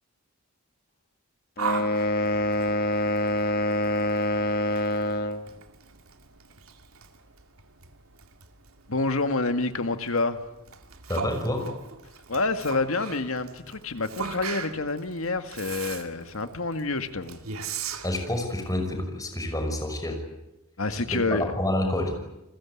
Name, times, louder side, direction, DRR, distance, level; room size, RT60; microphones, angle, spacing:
sound 1, 1.6-5.4, left 1 dB, 45° left, 2.0 m, -25 dB
Yell, 1.6-18.7, right 6 dB, 75° right, 2.3 m, -39 dB
voice 1, 8.9-10.4 12.3-17.4 20.8-21.5, left 3 dB, 70° left, 9 dB, 2.0 m, -28 dB
voice 2, 11.1-11.7 18.0-20.2 21.1-22.2, left 1 dB, 15° left, 4 dB, 6.0 m, -28 dB
30.0 x 21.5 x 8.6 m, 0.92 s
head